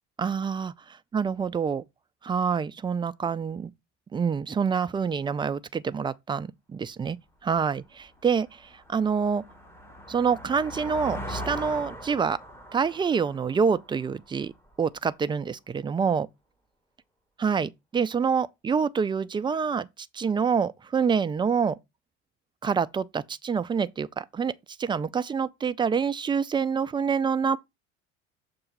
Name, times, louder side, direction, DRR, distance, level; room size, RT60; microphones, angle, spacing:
voice 1, 0.2-1.8 2.2-3.7 4.1-7.2 7.4-8.6 8.9-9.4 10.1-12.4 12.7-14.5 14.8-16.3 17.4-21.8 22.6-24.5 24.8-27.6, right 6 dB, 15° right, 0.3 m, -26 dB
sound 1, 8.2-14.7, equal, 5° left, 1.0 m, -40 dB
7.0 x 3.0 x 5.4 m
hypercardioid pair, 65°, 36 cm